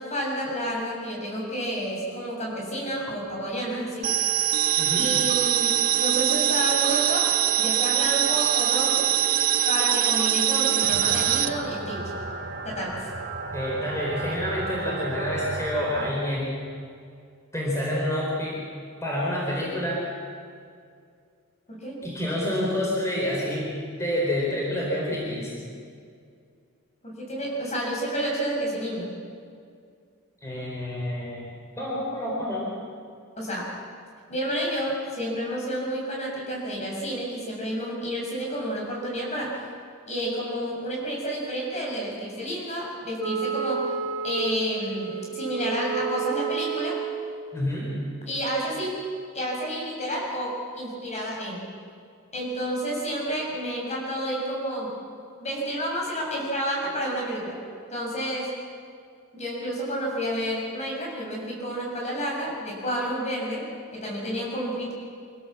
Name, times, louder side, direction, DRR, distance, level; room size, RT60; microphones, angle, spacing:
voice 1, 0.0-4.1 4.9-9.1 9.6-12.1 12.6-13.0 21.7-22.0 27.0-29.1 33.4-33.7 34.3-39.6 40.1-43.9 44.2-47.0 48.3-49.0 49.3-51.6 52.3-55.0 55.4-57.6 57.9-58.6 59.3-63.7 63.9-64.9, equal, 30° left, -2 dB, 6.8 m, -30 dB
sound 1, 4.0-11.5, right 11 dB, 40° right, 0.7 m, -23 dB
voice 2, 4.8-5.1 13.5-16.5 17.5-18.6 19.0-20.1 22.0-25.5 30.4-31.5 31.8-32.7 47.5-47.9, left 1 dB, 15° left, -4 dB, 4.4 m, -28 dB
sound 2, 10.8-16.1, right 2 dB, 60° right, 2.0 m, -34 dB
Wind instrument woodwind instrument, 43.2-47.3, right 7 dB, 75° right, 1.7 m, -31 dB
25.5 x 16.5 x 7.4 m, 2.3 s
head